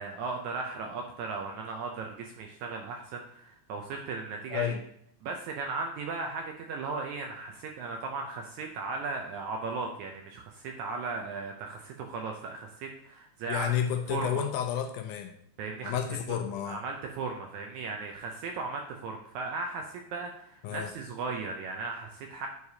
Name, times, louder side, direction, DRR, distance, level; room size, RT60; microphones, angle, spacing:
voice 1, 0.0-4.7 5.2-13.7 14.1-14.5 15.6-16.0 16.3-16.4 16.7-22.5, right 4 dB, 80° right, 2 dB, 1.7 m, -36 dB
voice 2, 13.5-15.3 15.8-16.8 20.6-20.9, left 9 dB, 80° left, 6 dB, 2.0 m, -31 dB
9.5 x 4.7 x 2.8 m, 0.70 s
omnidirectional pair, 3.9 m